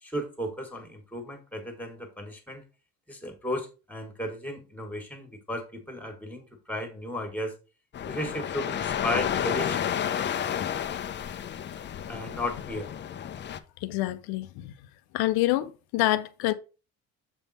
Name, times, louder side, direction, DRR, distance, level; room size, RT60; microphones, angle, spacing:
voice 1, 0.0-2.6 3.1-7.5 8.0-9.8 12.1-12.9, left 1 dB, 5° left, 1.6 m, -35 dB
sound 1, 7.9-13.6, left 9 dB, 30° left, 0.5 m, -31 dB
voice 2, 13.8-14.7 15.1-16.5, left 16 dB, 85° left, 0.6 m, -27 dB
7.0 x 3.6 x 4.1 m
cardioid pair, 125°, 36 cm